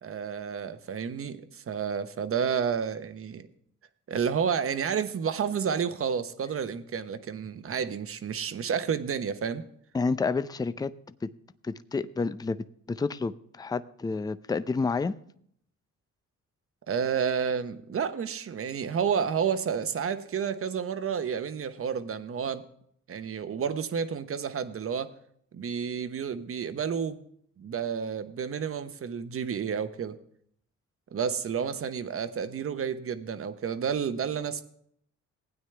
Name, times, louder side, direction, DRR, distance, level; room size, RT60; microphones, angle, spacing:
voice 1, 0.0-3.5 4.1-9.6 16.9-22.6 23.1-25.1 25.5-27.2 27.6-30.2 31.1-34.6, right 7 dB, 45° right, 10 dB, 1.1 m, -30 dB
voice 2, 9.9-10.9 11.2-11.3 11.6-12.6 12.9-15.2, left 4 dB, 15° left, 14 dB, 0.5 m, -29 dB
16.0 x 9.5 x 3.4 m, 0.66 s
cardioid pair, 90°, 30 cm